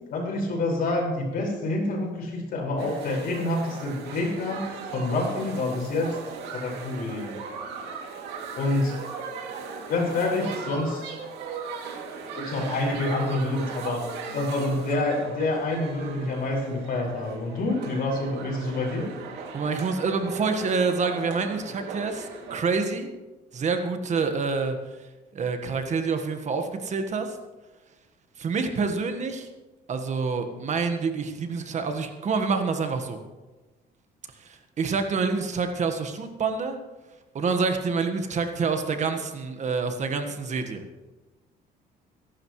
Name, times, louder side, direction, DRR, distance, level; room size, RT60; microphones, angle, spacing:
voice 1, 0.1-6.2 6.5-7.4 8.5-9.0 9.8-11.2 12.3-14.1 14.3-19.1, left 2 dB, 60° left, 0 dB, 5.3 m, -27 dB
sound 1, 2.8-22.6, right 5 dB, 85° right, 2.6 m, -38 dB
voice 2, 19.5-23.1 23.5-24.8 25.3-27.4 28.4-29.5 29.9-33.2 34.4-36.8 37.3-40.8, right 4 dB, 45° right, 6 dB, 1.5 m, -27 dB
23.0 x 11.5 x 3.2 m, 1.2 s
cardioid pair, 110°, 17 cm